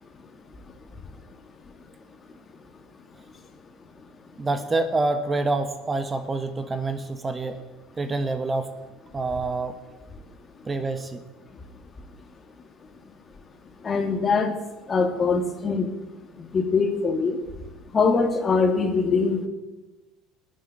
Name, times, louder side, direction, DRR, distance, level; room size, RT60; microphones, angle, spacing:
voice 1, 0.0-1.8 2.5-2.6 3.9-4.1 10.1-10.2 10.5-10.7 11.5-11.6 12.1-12.2 13.0-13.3 13.6-16.0 16.4-19.5, left 4 dB, 30° left, 5 dB, 2.7 m, -25 dB
voice 2, 4.4-7.6 8.0-8.7 9.1-9.8 10.7-11.2, right 3 dB, 25° right, 9 dB, 1.4 m, -27 dB
19.5 x 7.3 x 8.6 m, 1.1 s
hypercardioid pair, 70°, 0 cm